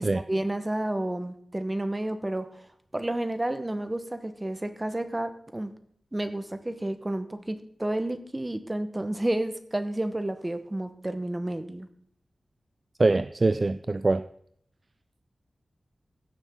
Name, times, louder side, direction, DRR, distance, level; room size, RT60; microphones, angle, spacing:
voice 1, 0.0-2.5 2.9-5.7 6.1-11.9, right 1 dB, 20° right, 1.0 m, -31 dB
voice 2, 13.0-14.2, right 3 dB, 40° right, 0.3 m, -23 dB
16.0 x 7.2 x 3.6 m
wide cardioid pair, 105°, 0 cm